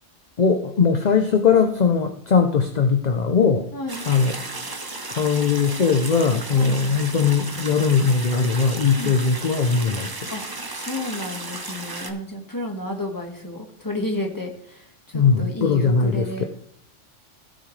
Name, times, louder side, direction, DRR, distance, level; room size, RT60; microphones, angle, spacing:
voice 1, 0.4-3.7 4.1-4.4 5.1-10.2 15.1-16.4, left 5 dB, 40° left, 6 dB, 0.7 m, -20 dB
voice 2, 3.7-4.0 6.5-6.8 9.0-9.2 10.3-10.4 10.7-16.4, left 1 dB, 15° left, 1 dB, 1.8 m, -31 dB
sound 1, 3.9-12.1, right 2 dB, 20° right, 0.8 m, -34 dB
16.5 x 6.5 x 3.3 m, 0.71 s
omnidirectional pair, 1.3 m